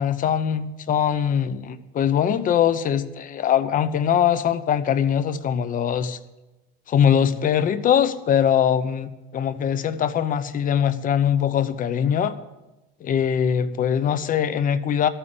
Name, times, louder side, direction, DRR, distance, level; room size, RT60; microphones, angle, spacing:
voice 1, 0.0-6.2 6.9-12.4 13.0-15.1, left 8 dB, 25° left, 12 dB, 0.8 m, -22 dB
12.5 x 8.9 x 8.5 m, 1.0 s
supercardioid pair, 150°, 30 cm